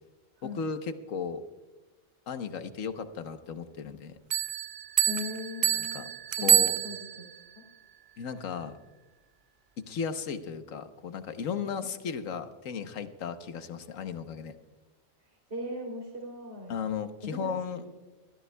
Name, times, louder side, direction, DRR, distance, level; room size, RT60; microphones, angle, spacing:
voice 1, 0.4-1.4 2.3-4.2 5.7-6.1 6.4-6.7 8.2-8.7 9.8-14.6 16.7-17.8, left 6 dB, 85° left, 9 dB, 1.3 m, -35 dB
Bell, 4.3-7.4, right 10 dB, 70° right, 0.4 m, -27 dB
voice 2, 5.1-6.1 6.4-7.3 7.5-7.6 15.3-16.7 17.2-17.6, left 2 dB, 55° right, 0 dB, 3.6 m, -39 dB
22.0 x 13.5 x 2.2 m, 1.2 s
omnidirectional pair, 1.3 m